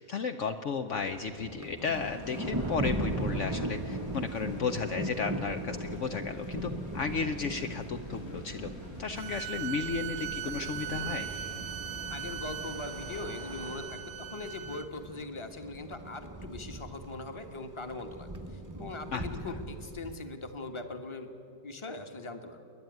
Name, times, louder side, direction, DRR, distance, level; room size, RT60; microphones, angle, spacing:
voice 1, 0.0-8.7 9.0-11.3 19.1-19.2, left 5 dB, 60° left, 6 dB, 1.1 m, -34 dB
Thunder, 0.9-20.2, right 1 dB, 20° right, 0.6 m, -39 dB
sound 1, 1.9-13.7, left 1 dB, 80° left, 5.4 m, -48 dB
sound 2, 9.2-14.9, right 12 dB, 85° right, 1.3 m, -40 dB
voice 2, 12.1-21.3 21.6-22.6, left 3 dB, 20° left, 6 dB, 1.3 m, -41 dB
28.5 x 10.5 x 9.3 m, 2.8 s
omnidirectional pair, 1.5 m